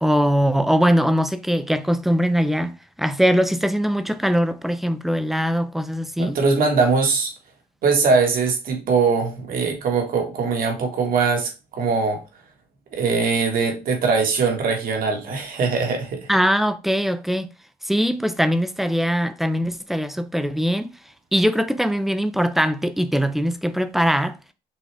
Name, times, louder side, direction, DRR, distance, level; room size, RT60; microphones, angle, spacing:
voice 1, 0.0-6.4 16.3-17.5 17.8-20.9 21.3-24.4, equal, ahead, 0.5 m, -21 dB
voice 2, 6.2-7.3 7.8-12.2 12.9-16.3, right 4 dB, 60° right, 1.5 m, -21 dB
6.1 x 2.4 x 3.4 m
cardioid pair, 110°, 17 cm